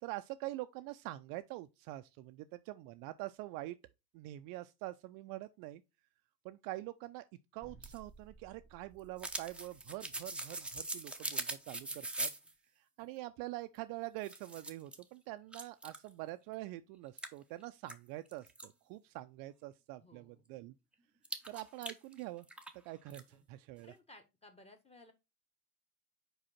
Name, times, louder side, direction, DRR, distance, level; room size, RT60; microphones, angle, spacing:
voice 1, 0.0-3.8 4.1-5.8 6.4-7.2 7.5-12.3 12.8-20.7 21.5-22.5 22.8-23.9, right 17 dB, 50° right, 0.5 m, -45 dB
sound 1, 7.6-12.5 13.7-13.8 14.2-15.0 15.5-16.1 16.5-16.6 17.2-18.7 21.2-22.8 23.1-23.2, right 2 dB, ahead, 0.8 m, -42 dB
voice 2, 11.8-12.3 20.0-20.4 23.1-23.4 23.8-25.1, left 2 dB, 15° left, 1.5 m, -60 dB
5.0 x 4.7 x 4.4 m
hypercardioid pair, 90°, 47 cm